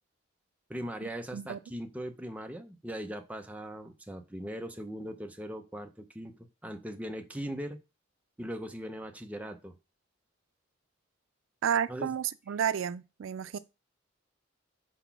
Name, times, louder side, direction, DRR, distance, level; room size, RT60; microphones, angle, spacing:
voice 1, 0.7-7.8 8.4-9.8 11.9-12.1 13.5-13.6, equal, 10° right, 0.6 m, -40 dB
voice 2, 11.6-13.6, right 8 dB, 85° right, 0.4 m, -31 dB
4.5 x 4.1 x 5.7 m
head